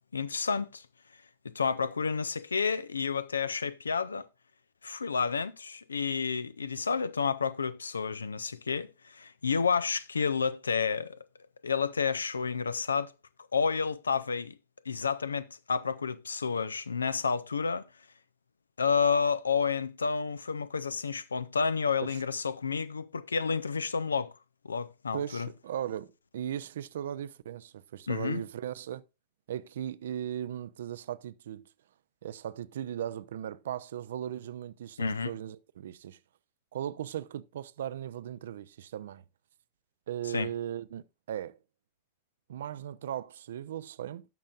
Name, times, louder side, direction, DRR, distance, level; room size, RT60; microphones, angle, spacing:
voice 1, 0.1-0.9 1.4-4.3 4.8-11.2 11.6-13.1 13.5-14.6 14.9-17.9 18.8-24.3 24.6-25.5 28.1-28.4 35.0-35.3 40.3-40.5, left 5 dB, 75° left, 0.5 m, -30 dB
voice 2, 25.1-29.0 29.5-31.7 32.2-36.2 36.7-39.2 40.1-41.6 42.5-44.3, right 10 dB, 60° right, 0.4 m, -37 dB
16.5 x 6.3 x 2.4 m
figure-of-eight pair, 90°, 0 cm